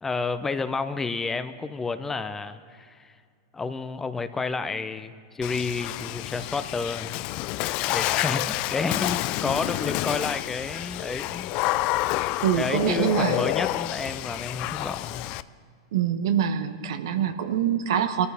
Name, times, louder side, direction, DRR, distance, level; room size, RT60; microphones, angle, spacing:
voice 1, 0.0-3.1 3.5-7.2 7.9-11.5 12.5-15.3, left 4 dB, 15° left, 11 dB, 0.7 m, -30 dB
Water / Splash splatter, 5.4-15.4, left 17 dB, 45° left, 0.4 m, -29 dB
voice 2, 12.4-13.5 15.9-18.3, right 9 dB, 75° right, 9 dB, 1.0 m, -24 dB
22.0 x 14.0 x 3.5 m, 2.1 s
hypercardioid pair, 120°, 2 cm